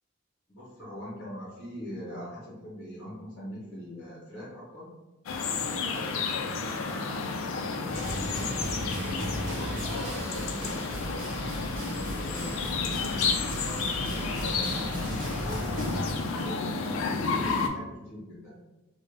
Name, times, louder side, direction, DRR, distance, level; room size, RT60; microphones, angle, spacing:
voice 1, 0.6-4.9 5.4-6.0 6.5-9.1 9.5-11.3 11.9-15.1 15.4-16.6 17.0-18.5, equal, 50° left, -6 dB, 0.7 m, -43 dB
sound 1, 5.3-17.7, left 4 dB, 70° left, 0.3 m, -31 dB
sound 2, 7.9-16.1, equal, 35° right, 0.8 m, -36 dB
2.1 x 2.0 x 3.1 m, 1.1 s
head